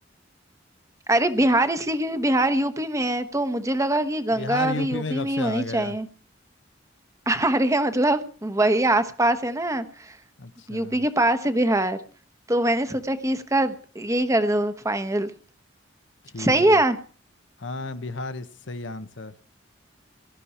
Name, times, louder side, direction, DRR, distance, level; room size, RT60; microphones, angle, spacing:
voice 1, 1.1-6.1 7.3-10.2 10.7-12.0 12.5-15.3 16.4-17.0, right 1 dB, 15° right, 1.1 m, -23 dB
voice 2, 4.3-6.0 10.4-11.0 16.2-16.8 17.6-19.3, left 3 dB, 70° left, 1.1 m, -33 dB
17.5 x 13.0 x 4.4 m
head